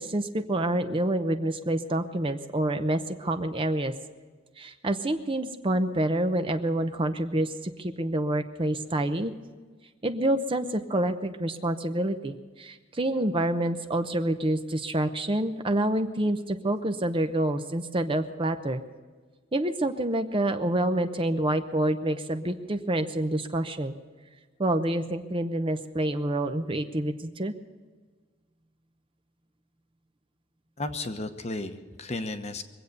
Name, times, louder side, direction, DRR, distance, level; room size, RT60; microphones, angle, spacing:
voice 1, 0.0-3.9 4.6-9.3 10.0-18.8 19.5-23.9 24.6-27.5, right 1 dB, 30° right, 8 dB, 0.7 m, -27 dB
voice 2, 30.8-32.6, left 2 dB, 35° left, 7 dB, 1.0 m, -34 dB
23.5 x 8.3 x 6.6 m, 1.4 s
head